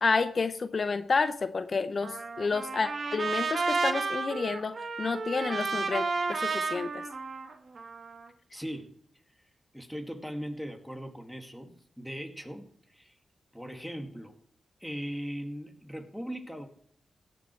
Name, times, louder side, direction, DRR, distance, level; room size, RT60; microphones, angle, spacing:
voice 1, 0.0-7.0, left 4 dB, 55° left, 11 dB, 0.6 m, -30 dB
Trumpet, 2.0-8.3, right 4 dB, 60° right, 1.3 m, -32 dB
voice 2, 8.5-8.9 9.7-13.1 13.5-14.4 14.8-16.7, equal, ahead, 5 dB, 2.1 m, -39 dB
17.0 x 6.2 x 4.5 m, 0.64 s
cardioid pair, 55°, 0 cm